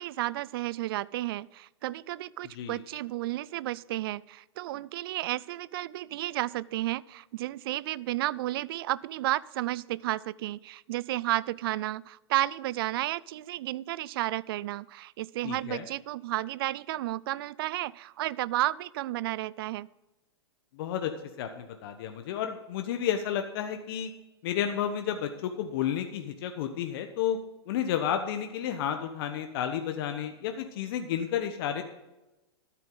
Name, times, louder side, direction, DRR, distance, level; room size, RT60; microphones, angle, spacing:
voice 1, 0.0-19.9, right 16 dB, 55° right, 23 dB, 0.4 m, -32 dB
voice 2, 15.4-15.9 20.7-21.1 21.4-24.1 24.4-27.4 27.7-31.8, left 9 dB, 55° left, 6 dB, 1.1 m, -31 dB
13.0 x 9.1 x 3.9 m, 1.0 s
hypercardioid pair, 115°, 14 cm